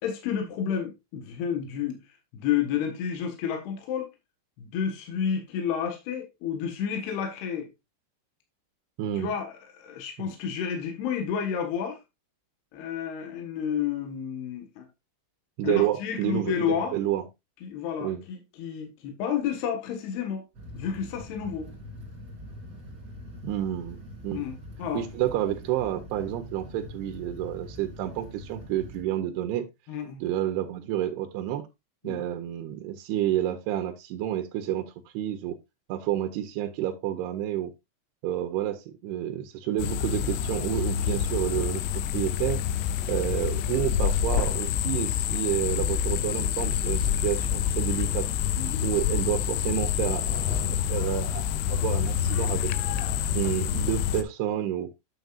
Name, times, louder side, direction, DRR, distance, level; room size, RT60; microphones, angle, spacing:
voice 1, 0.0-2.0 2.3-4.1 4.6-7.7 9.2-12.0 12.7-14.9 15.6-17.0 17.6-20.4 20.7-21.7 24.3-25.0 29.9-30.2 32.0-32.2 41.5-41.6 48.6-48.9, left 8 dB, 70° left, 3.3 m, -30 dB
voice 2, 9.0-9.3 15.6-17.2 18.0-18.2 23.4-24.4 24.9-29.7 30.2-31.6 32.0-35.6 35.9-37.7 38.2-41.8 42.1-42.6 43.1-48.3 48.8-52.7 53.3-54.9, right 12 dB, 80° right, 2.5 m, -29 dB
sound 1, 20.5-29.0, left 1 dB, 35° right, 1.9 m, -43 dB
sound 2, 39.8-54.2, left 9 dB, 90° left, 3.1 m, -27 dB
9.3 x 7.2 x 2.4 m
omnidirectional pair, 5.2 m